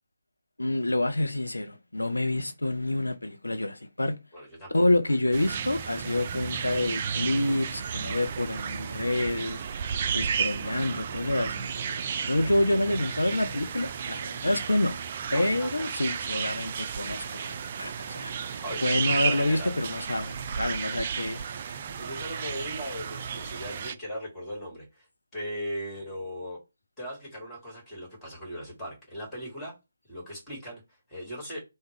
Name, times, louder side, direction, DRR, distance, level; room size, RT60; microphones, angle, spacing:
voice 1, 0.6-4.2 4.7-9.6 10.1-11.9 12.2-15.0 15.3-21.4, left 1 dB, 75° left, 0.5 m, -28 dB
voice 2, 4.3-4.8 15.3-15.9 18.6-19.7 22.0-25.1 25.3-26.6 27.0-29.7 30.1-31.6, equal, 10° left, 2.0 m, -38 dB
sound 1, 5.3-23.9, right 7 dB, 35° right, 0.3 m, -33 dB
3.5 x 2.1 x 3.3 m
figure-of-eight pair, 145°, 0 cm